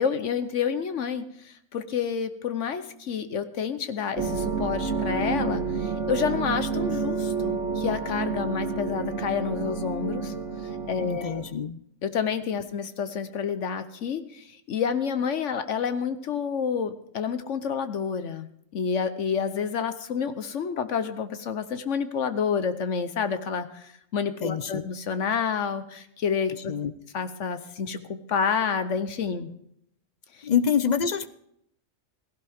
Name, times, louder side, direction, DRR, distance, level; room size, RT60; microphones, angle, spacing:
voice 1, 0.0-10.3 10.9-11.4 12.0-18.5 18.7-26.7 27.1-29.5, left 6 dB, 70° left, 10 dB, 1.2 m, -29 dB
sound 1, 4.2-11.5, right 4 dB, 70° right, 1.8 m, -29 dB
voice 2, 11.0-11.8 24.4-24.8 26.5-26.9 30.4-31.3, left 7 dB, 45° left, 14 dB, 0.6 m, -26 dB
16.5 x 16.0 x 3.5 m, 0.73 s
omnidirectional pair, 1.3 m